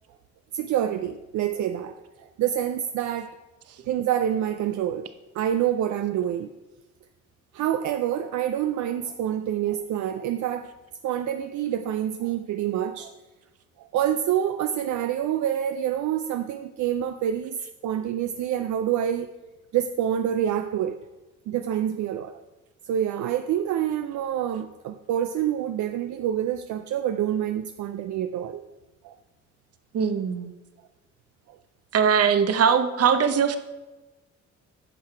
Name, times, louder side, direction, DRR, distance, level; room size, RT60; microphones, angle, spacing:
voice 1, 0.5-3.3 3.9-5.1 5.3-6.5 7.5-10.7 11.0-13.1 13.8-17.6 17.8-19.3 19.7-21.0 21.5-22.3 22.9-28.6 29.0-29.2, right 10 dB, 70° right, 8 dB, 0.5 m, -27 dB
voice 2, 29.9-30.5 31.9-33.6, right 7 dB, 55° right, 9 dB, 0.9 m, -21 dB
10.0 x 5.7 x 4.5 m, 1.1 s
cardioid pair, 90°, 30 cm